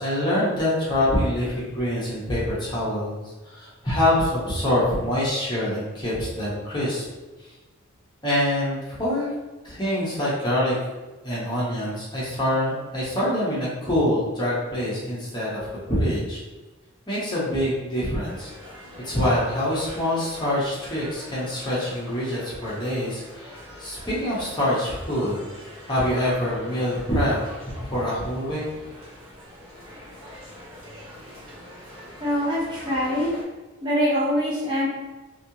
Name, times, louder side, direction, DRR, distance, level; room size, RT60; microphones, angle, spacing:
voice 1, 0.0-7.0 8.2-9.3 9.6-10.8 11.2-16.4 17.1-18.5 19.0-25.4 25.9-28.6, left 1 dB, 20° left, -8 dB, 1.0 m, -25 dB
sound 1, 18.3-33.4, equal, 80° right, 1.2 m, -44 dB
voice 2, 32.2-33.4 33.8-34.9, equal, 20° right, -7 dB, 0.6 m, -24 dB
3.1 x 2.8 x 2.8 m, 1.2 s
head